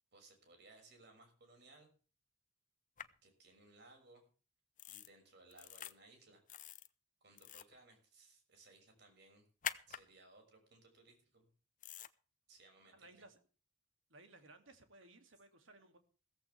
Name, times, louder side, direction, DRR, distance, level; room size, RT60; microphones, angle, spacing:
voice 1, 0.1-1.9 3.2-4.2 4.9-6.4 7.2-9.5 9.9-11.5 12.5-13.1, right 2 dB, 55° right, 3 dB, 6.3 m, -63 dB
sound 1, 3.0-3.1 4.8-5.1 5.5-5.9 6.5-6.9 7.3-7.7 9.6-10.0 11.8-12.1, left 9 dB, 40° left, 0.8 m, -45 dB
voice 2, 12.9-13.4 14.1-16.0, right 2 dB, 80° right, 7 dB, 2.6 m, -60 dB
16.0 x 15.0 x 3.5 m, 0.38 s
head